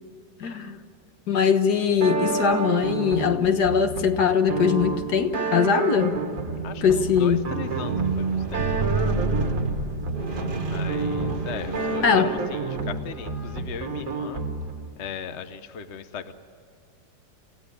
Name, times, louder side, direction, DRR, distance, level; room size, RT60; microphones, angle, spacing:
voice 1, 0.4-0.8 1.3-6.2 6.8-7.4 12.0-12.3, left 7 dB, 65° left, 7 dB, 1.8 m, -21 dB
sound 1, 2.0-14.9, right 3 dB, 50° right, 2.1 m, -30 dB
Squeak, 6.4-12.8 13.5-13.7, right 3 dB, 30° right, 1.4 m, -29 dB
voice 2, 6.6-9.0 10.6-14.5 15.0-16.3, left 6 dB, 45° left, 9 dB, 1.1 m, -37 dB
28.0 x 16.0 x 9.9 m, 2.3 s
omnidirectional pair, 1.9 m